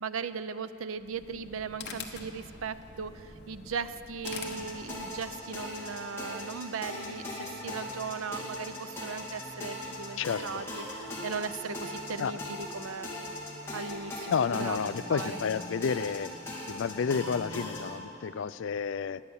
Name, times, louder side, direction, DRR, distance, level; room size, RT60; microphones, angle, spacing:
voice 1, 0.0-13.1 13.7-15.4, right 5 dB, 90° right, 13 dB, 0.6 m, -38 dB
sound 1, 1.0-5.4, left 5 dB, 50° left, 1.1 m, -45 dB
sound 2, 4.2-18.0, left 1 dB, 10° left, 2.2 m, -40 dB
voice 2, 10.2-10.6 12.2-12.4 14.3-16.3 16.6-19.2, left 6 dB, 70° left, 16 dB, 0.4 m, -31 dB
19.5 x 9.6 x 7.2 m, 2.8 s
head